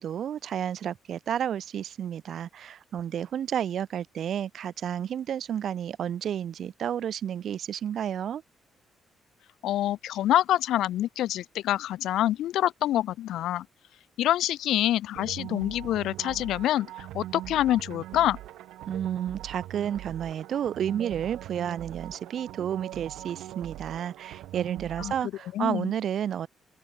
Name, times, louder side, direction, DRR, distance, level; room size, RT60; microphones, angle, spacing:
voice 1, 0.0-8.4 18.9-26.5, right 9 dB, 65° right, 2.1 m, -31 dB
voice 2, 9.6-13.6 14.2-18.4 25.0-25.1 25.5-25.9, left 13 dB, 80° left, 1.1 m, -26 dB
sound 1, 15.1-25.2, right 15 dB, 90° right, 1.5 m, -41 dB
open air
cardioid pair, 90°, 0 cm